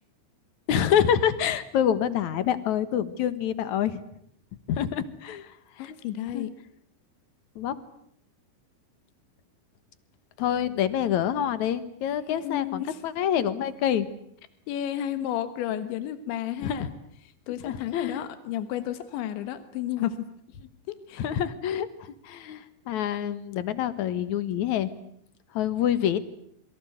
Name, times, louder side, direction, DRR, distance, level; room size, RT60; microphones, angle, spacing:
voice 1, 0.7-4.0 4.7-5.5 5.8-5.9 6.3-6.5 7.6-7.7 10.4-14.1 16.6-16.9 17.5-18.3 21.2-21.9 22.2-24.9 25.5-26.2, left 9 dB, 60° left, 14 dB, 2.1 m, -26 dB
voice 2, 5.8-6.5 12.3-13.0 14.7-16.9 17.2-20.3 20.9-21.3, left 11 dB, 90° left, 11 dB, 3.7 m, -32 dB
28.5 x 23.5 x 8.0 m, 0.68 s
omnidirectional pair, 5.1 m